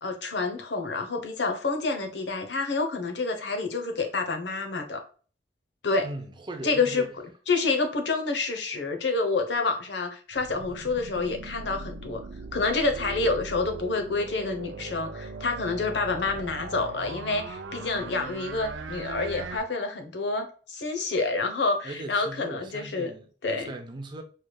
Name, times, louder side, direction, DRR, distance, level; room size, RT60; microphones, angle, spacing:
voice 1, 0.0-5.0 5.8-6.1 6.6-7.0 7.5-12.2 12.5-23.1 23.4-23.7, left 3 dB, 70° left, 0.8 m, -28 dB
voice 2, 6.0-7.1 21.8-23.3 23.6-24.2, right 2 dB, 25° right, 0.5 m, -38 dB
sound 1, 10.3-19.6, right 3 dB, 85° right, 0.5 m, -39 dB
4.7 x 3.2 x 2.2 m
head